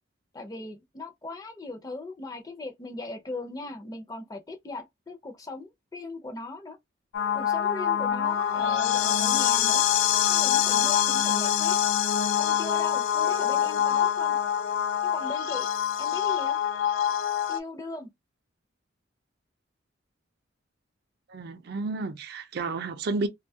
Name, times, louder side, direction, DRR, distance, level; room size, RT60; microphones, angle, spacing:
voice 1, 0.3-6.8 7.3-9.8 10.3-11.8 12.4-14.4 15.0-15.7 16.0-16.6 17.5-18.1, left 2 dB, 20° left, 0.5 m, -38 dB
sound 1, 7.1-17.6, left 9 dB, 85° left, 0.3 m, -25 dB
voice 2, 21.3-23.3, right 3 dB, 55° right, 0.4 m, -31 dB
2.6 x 2.2 x 2.7 m
head